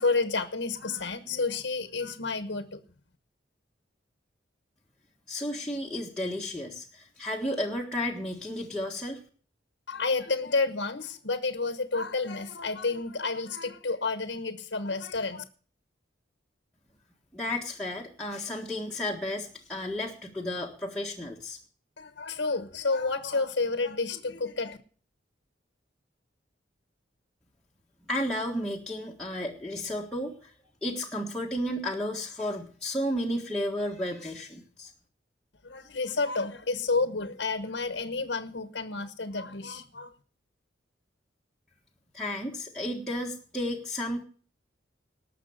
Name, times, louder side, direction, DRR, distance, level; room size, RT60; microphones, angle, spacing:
voice 1, 0.0-2.8 9.9-15.4 22.0-24.8 35.6-40.2, left 3 dB, 65° left, 10 dB, 1.2 m, -30 dB
voice 2, 5.3-9.2 17.3-21.6 28.1-30.5 30.8-34.9 42.1-44.2, left 1 dB, 5° left, -5 dB, 1.6 m, -33 dB
19.0 x 6.7 x 6.5 m, 0.43 s
head